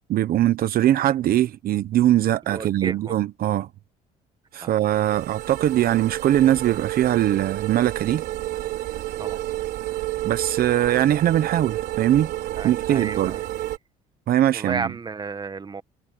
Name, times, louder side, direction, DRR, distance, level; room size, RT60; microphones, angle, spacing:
voice 1, 0.1-3.7 4.5-8.2 10.2-12.3 12.6-13.4 14.3-14.9, right 12 dB, 60° right, 1.0 m, -21 dB
voice 2, 2.5-3.2 4.6-4.7 9.2-9.4 12.6-13.5 14.5-15.8, right 5 dB, 25° right, 1.5 m, -32 dB
sound 1, 4.8-13.8, right 15 dB, 80° right, 5.2 m, -30 dB
cardioid pair, 110°, 17 cm